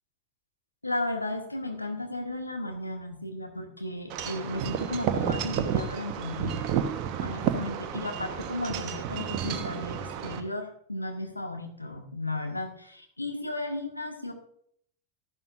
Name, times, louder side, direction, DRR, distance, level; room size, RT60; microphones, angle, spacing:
voice 1, 0.8-6.5 7.2-14.3, left 2 dB, 85° left, 4 dB, 1.5 m, -34 dB
Wind chime / Wind, 4.1-10.4, right 8 dB, 40° right, 1.0 m, -31 dB
13.0 x 11.0 x 2.5 m, 0.65 s
figure-of-eight pair, 90°, 0 cm